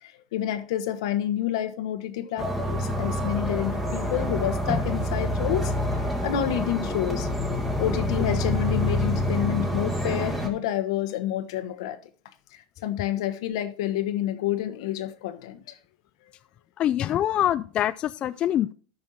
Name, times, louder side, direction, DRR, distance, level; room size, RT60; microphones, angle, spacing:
voice 1, 0.0-5.7 6.2-7.3 7.8-12.0 12.8-15.8, left 11 dB, 85° left, 1.2 m, -29 dB
sound 1, 2.4-10.5, left 1 dB, 5° right, 2.0 m, -27 dB
voice 2, 16.8-18.7, left 11 dB, 35° left, 0.3 m, -24 dB
13.0 x 5.5 x 4.3 m
supercardioid pair, 135°, 3 cm